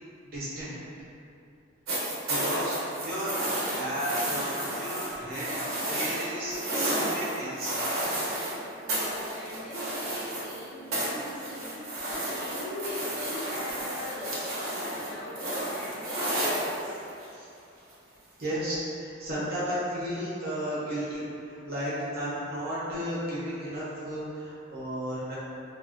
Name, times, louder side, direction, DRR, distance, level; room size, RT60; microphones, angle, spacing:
voice 1, 0.3-0.8 2.3-3.3 3.7-7.7 17.4-17.5 18.4-25.4, equal, 45° right, -10 dB, 0.7 m, -34 dB
sound 1, 1.9-8.6 8.9-10.6 10.9-17.3 18.4-18.5, right 1 dB, 80° right, 0.7 m, -32 dB
voice 2, 8.8-17.0, left 1 dB, 40° left, -8 dB, 0.5 m, -40 dB
2.4 x 2.2 x 2.4 m, 2.6 s
head